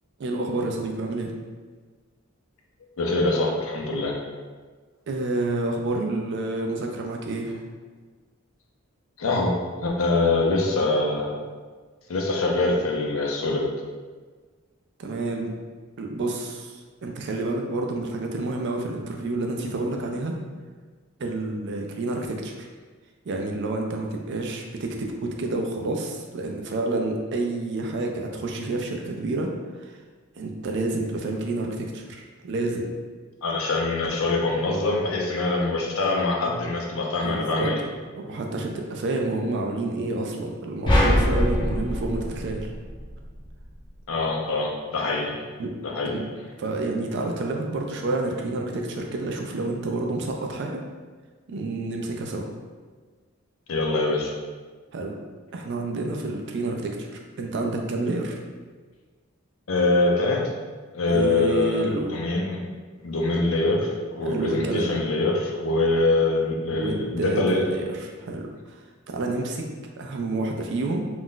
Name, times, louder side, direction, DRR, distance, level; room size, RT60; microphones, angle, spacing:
voice 1, 0.2-1.3 5.1-7.6 15.0-15.5 16.0-16.7 17.0-20.4 21.2-22.7 23.3-29.5 29.8-29.9 30.4-32.9 37.2-37.7 38.2-42.7 45.6-45.7 46.0-46.3 46.6-50.8 51.5-52.4 54.9-55.2 55.5-57.1 57.4-58.4 61.1-62.1 64.2-64.9 66.7-68.5 69.1-69.6 70.0-71.0, right 2 dB, 60° right, 2 dB, 0.4 m, -29 dB
voice 2, 3.0-4.1 9.2-9.6 9.8-11.4 12.1-13.6 33.4-37.8 44.1-45.4 45.8-46.1 53.7-54.3 59.7-60.4 60.9-62.6 63.0-67.6, left 2 dB, 75° left, 0 dB, 0.5 m, -24 dB
sound 1, 40.9-43.3, equal, 25° left, 0.5 m, -23 dB
2.4 x 2.1 x 3.7 m, 1.4 s
head